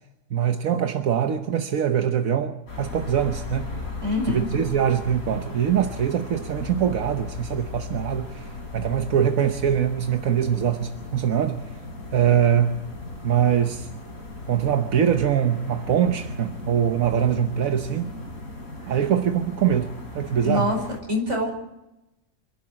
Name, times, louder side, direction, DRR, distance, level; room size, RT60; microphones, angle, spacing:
voice 1, 0.3-3.8 4.3-11.8 12.1-12.8 13.2-13.9 14.5-18.1 18.9-20.7, right 9 dB, 80° right, 1.4 m, -23 dB
sound 1, 2.7-21.0, left 3 dB, 80° left, 4.6 m, -37 dB
voice 2, 4.0-4.5 18.8-18.9 20.4-20.8 21.1-21.5, left 2 dB, 60° right, 5.4 m, -24 dB
26.0 x 11.5 x 8.8 m
omnidirectional pair, 1.4 m